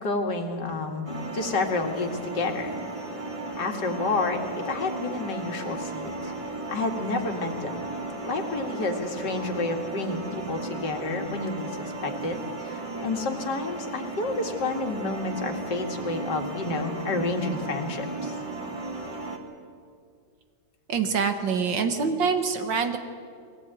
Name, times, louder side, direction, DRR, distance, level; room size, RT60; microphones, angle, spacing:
voice 1, 0.0-1.1 1.3-2.8 3.6-6.3 6.7-7.7 8.3-11.7 12.0-18.3, left 3 dB, 60° left, 3 dB, 2.6 m, -30 dB
sound 1, 1.1-19.4, right 2 dB, 15° right, 2.2 m, -35 dB
voice 2, 20.9-23.0, right 5 dB, 70° right, 7 dB, 2.0 m, -25 dB
21.0 x 17.5 x 9.0 m, 2.2 s
omnidirectional pair, 2.1 m